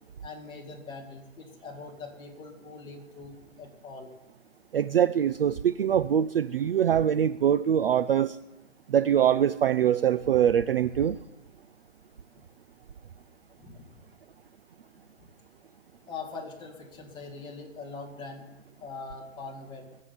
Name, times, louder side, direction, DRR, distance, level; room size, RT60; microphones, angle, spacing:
voice 1, 0.2-4.1 13.6-13.8 16.1-18.5 18.8-19.8, left 4 dB, 10° left, -2 dB, 2.3 m, -42 dB
voice 2, 4.7-8.4 8.9-11.2, right 9 dB, 45° right, 14 dB, 0.4 m, -23 dB
19.5 x 7.6 x 9.7 m, 0.99 s
hypercardioid pair, 155°, 40 cm